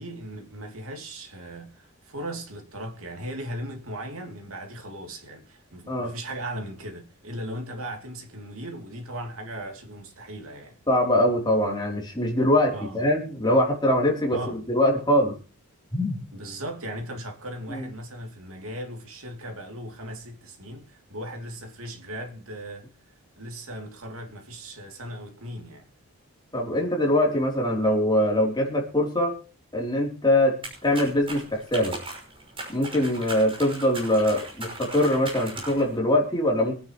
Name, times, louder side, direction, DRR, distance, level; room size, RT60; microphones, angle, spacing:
voice 1, 0.0-10.8 12.7-13.2 14.3-14.6 16.3-22.9 23.4-25.9, right 1 dB, 70° right, 2.9 m, -37 dB
voice 2, 10.9-15.3 15.9-16.2 17.7-17.9 26.5-29.3 29.7-31.9 32.7-36.8, left 1 dB, 20° left, 3.4 m, -23 dB
sound 1, 30.6-36.0, right 2 dB, 25° right, 6.0 m, -38 dB
24.5 x 9.7 x 3.1 m
head